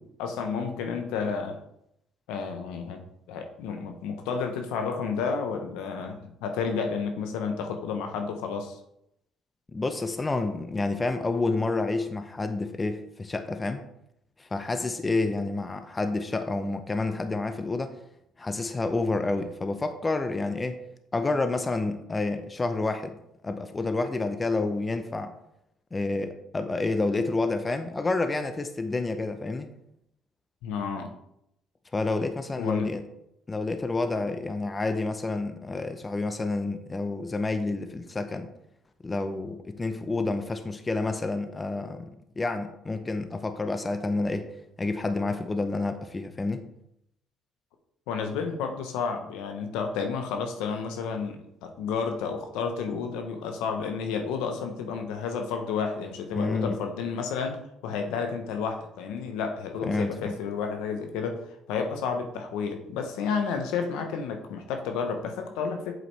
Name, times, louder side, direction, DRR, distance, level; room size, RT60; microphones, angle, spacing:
voice 1, 0.0-1.6 2.3-8.8 30.6-31.1 32.6-32.9 48.1-65.9, left 5 dB, 85° left, 5 dB, 0.8 m, -31 dB
voice 2, 9.7-13.8 14.4-17.9 18.4-20.8 21.1-23.2 23.4-25.3 25.9-29.7 31.9-33.0 33.5-38.5 39.0-44.5 44.8-46.6 56.3-56.8 59.8-60.3, left 3 dB, 25° left, 9 dB, 0.6 m, -29 dB
7.7 x 5.0 x 3.3 m, 0.79 s
supercardioid pair, 85°, 0 cm